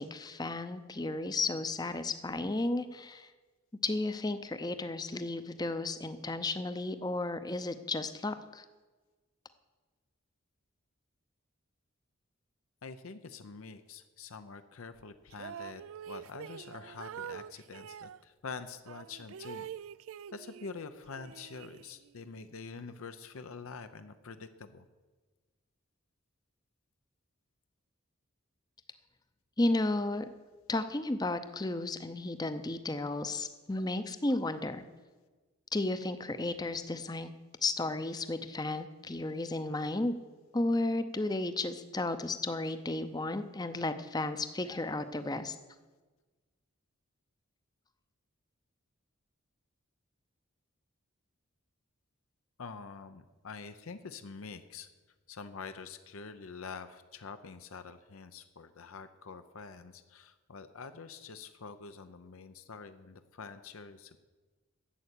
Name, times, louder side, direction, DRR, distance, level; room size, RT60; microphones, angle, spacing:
voice 1, 0.0-3.3 3.8-8.6 29.6-30.3 30.7-34.8 35.7-37.3 37.6-40.2 40.5-45.6, left 2 dB, 20° left, 11 dB, 0.6 m, -33 dB
voice 2, 12.8-19.7 20.3-24.8 52.6-54.9 55.3-64.2, left 4 dB, 80° left, 9 dB, 0.7 m, -46 dB
sound 1, 15.3-18.2 18.9-20.8 21.2-22.2, right 9 dB, 75° right, 0.3 m, -45 dB
11.5 x 7.8 x 8.3 m, 1.3 s
head